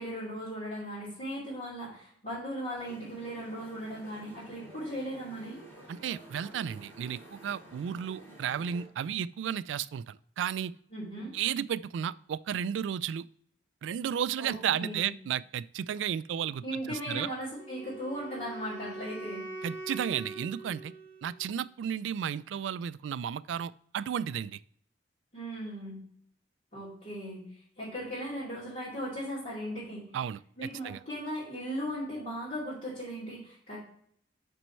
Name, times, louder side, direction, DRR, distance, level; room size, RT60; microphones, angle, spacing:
voice 1, 0.0-5.6 10.9-11.3 14.4-15.1 16.6-19.4 25.3-26.0 26.7-27.4 27.8-30.0 30.6-33.8, equal, 45° left, -10 dB, 2.8 m, -37 dB
sound 1, 2.7-8.8, right 1 dB, 15° left, 2.6 m, -51 dB
voice 2, 5.9-10.7 11.3-13.3 13.8-17.3 19.6-20.9 21.2-24.6 30.1-30.4 30.8-31.0, right 8 dB, 85° right, 18 dB, 0.3 m, -33 dB
Wind instrument woodwind instrument, 17.6-21.7, right 2 dB, 65° left, 2.3 m, -43 dB
6.1 x 5.3 x 4.5 m, 0.65 s
head